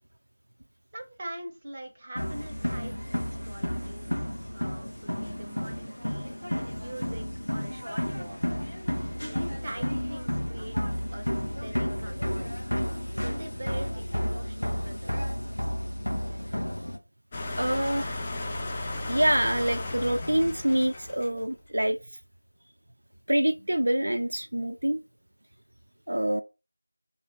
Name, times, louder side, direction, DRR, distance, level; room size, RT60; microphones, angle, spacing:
voice 1, 0.9-6.4 6.8-8.6 9.1-10.8 11.1-12.5 12.9-15.2, right 1 dB, 20° right, 0.7 m, -43 dB
sound 1, 2.2-17.0, equal, 85° left, 1.0 m, -32 dB
sound 2, 17.3-21.5, left 2 dB, 15° left, 0.4 m, -34 dB
voice 2, 17.5-18.2 19.1-22.0 23.3-25.0 26.1-26.4, right 1 dB, 65° right, 0.3 m, -26 dB
3.0 x 2.5 x 3.2 m
figure-of-eight pair, 170°, 0 cm